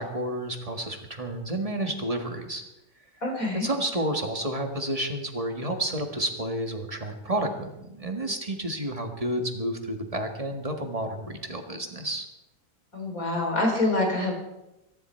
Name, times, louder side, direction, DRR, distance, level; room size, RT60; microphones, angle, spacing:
voice 1, 0.0-2.6 3.5-12.3, right 1 dB, 20° right, 4 dB, 1.8 m, -30 dB
voice 2, 3.2-3.7 12.9-14.3, left 2 dB, 60° left, 1 dB, 4.3 m, -26 dB
23.0 x 11.0 x 4.5 m, 0.92 s
omnidirectional pair, 1.7 m